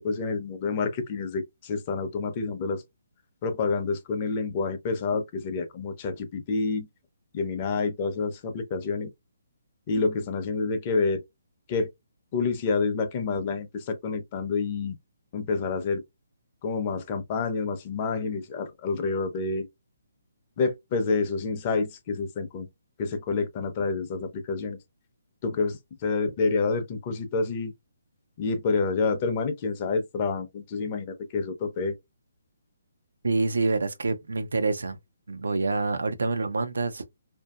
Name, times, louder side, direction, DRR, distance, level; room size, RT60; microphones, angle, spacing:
voice 1, 0.0-2.8 3.4-6.9 7.3-9.1 9.9-11.2 11.7-11.9 12.3-15.0 15.3-16.0 16.6-19.7 20.6-22.7 23.0-24.8 25.4-27.7 28.4-31.9, left 4 dB, 30° left, 0.6 m, -28 dB
voice 2, 33.2-35.0 35.3-37.1, right 3 dB, 90° right, 0.6 m, -27 dB
2.6 x 2.6 x 2.3 m
hypercardioid pair, 160°, 0 cm